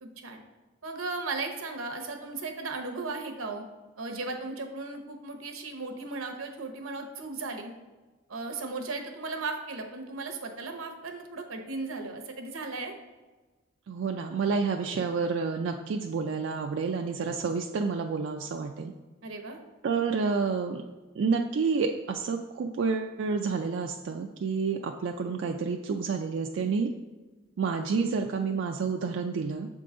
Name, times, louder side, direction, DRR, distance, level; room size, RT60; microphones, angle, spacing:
voice 1, 0.0-0.4 0.8-3.6 4.0-7.7 8.3-12.9 19.2-19.6, right 3 dB, 90° right, 4 dB, 0.8 m, -36 dB
voice 2, 13.9-18.9 19.8-20.8 21.2-26.9 27.6-29.7, right 5 dB, 60° right, 3 dB, 0.3 m, -29 dB
6.7 x 3.8 x 3.7 m, 1.2 s
head